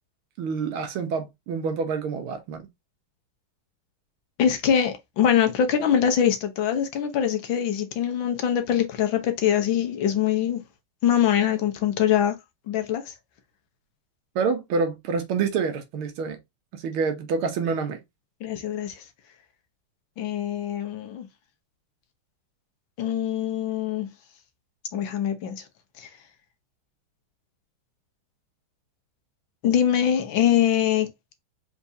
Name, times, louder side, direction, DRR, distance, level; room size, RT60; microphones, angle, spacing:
voice 1, 0.4-2.7 14.4-16.4 16.7-18.0, right 5 dB, 85° right, 1.8 m, -27 dB
voice 2, 4.4-10.6 11.0-12.3 12.7-13.1 18.4-19.0 20.2-21.3 23.0-24.1 24.9-25.6 26.0-26.1 29.6-31.1, left 9 dB, 70° left, 1.6 m, -23 dB
4.5 x 3.6 x 2.7 m
omnidirectional pair, 2.3 m